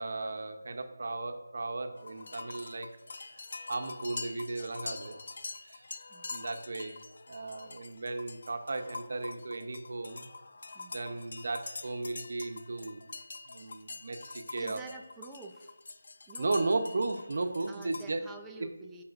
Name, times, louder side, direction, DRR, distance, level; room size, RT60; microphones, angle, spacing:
voice 1, 0.0-2.9 3.3-3.4 3.7-5.2 5.6-5.9 6.3-7.0 7.3-10.2 10.9-13.1 13.5-14.8 16.4-18.2, right 3 dB, 60° right, 7 dB, 0.8 m, -35 dB
sound 1, 2.0-18.1, left 3 dB, 60° left, 0.5 m, -45 dB
voice 2, 14.5-15.7 16.3-16.6 17.3-19.0, right 4 dB, 5° right, 1 dB, 0.6 m, -48 dB
14.0 x 5.7 x 2.6 m, 1.0 s
figure-of-eight pair, 165°, 0 cm